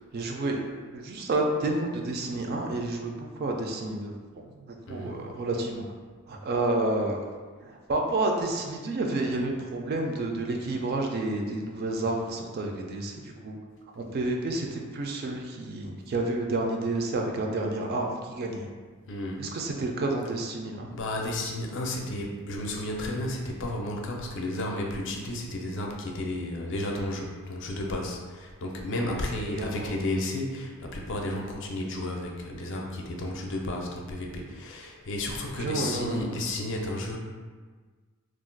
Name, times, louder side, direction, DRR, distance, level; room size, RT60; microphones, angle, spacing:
voice 1, 0.1-0.6 0.9-5.8 6.3-7.2 7.6-13.6 14.0-18.7 19.4-20.9 29.5-29.9 35.6-36.3, right 2 dB, 45° right, 1 dB, 0.3 m, -30 dB
voice 2, 4.9-5.2 19.1-19.5 20.9-37.2, left 1 dB, 55° left, 0 dB, 0.4 m, -32 dB
2.4 x 2.1 x 3.8 m, 1.5 s
head